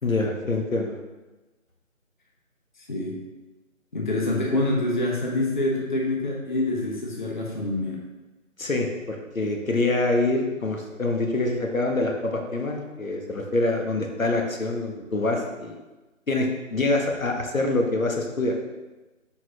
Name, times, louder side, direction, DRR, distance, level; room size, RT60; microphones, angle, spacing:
voice 1, 0.0-1.0 8.6-15.7 16.3-18.5, left 2 dB, 75° left, 2 dB, 1.4 m, -25 dB
voice 2, 3.9-8.0, left 2 dB, 35° left, -2 dB, 1.1 m, -26 dB
10.5 x 4.3 x 2.9 m, 1.1 s
figure-of-eight pair, 160°, 40 cm